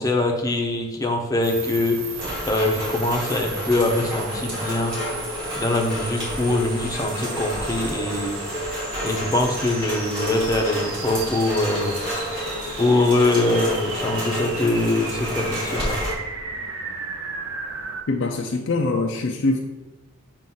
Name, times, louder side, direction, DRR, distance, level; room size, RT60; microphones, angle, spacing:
voice 1, 0.0-2.0 2.4-5.0 5.5-8.4 9.0-12.0 12.8-16.0, left 2 dB, 15° left, 1 dB, 0.8 m, -23 dB
sound 1, 1.4-18.0, right 5 dB, 70° right, 0.7 m, -35 dB
Rain, 2.2-16.1, left 1 dB, 25° right, 2.1 m, -30 dB
voice 2, 18.1-19.6, left 3 dB, 60° left, 2 dB, 0.5 m, -23 dB
7.5 x 2.5 x 5.4 m, 1.2 s
head